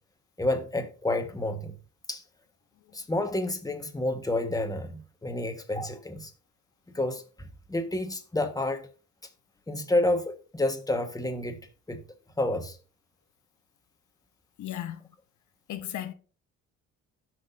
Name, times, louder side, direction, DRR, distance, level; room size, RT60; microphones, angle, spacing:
voice 1, 0.4-1.7 2.1-2.2 2.9-6.3 6.9-8.9 9.7-11.6 11.9-12.0 12.4-12.8, left 1 dB, 10° left, 1.6 m, -29 dB
voice 2, 14.6-15.0 15.7-16.1, left 12 dB, 75° left, 1.0 m, -35 dB
17.0 x 6.3 x 2.8 m
cardioid pair, 90°, 30 cm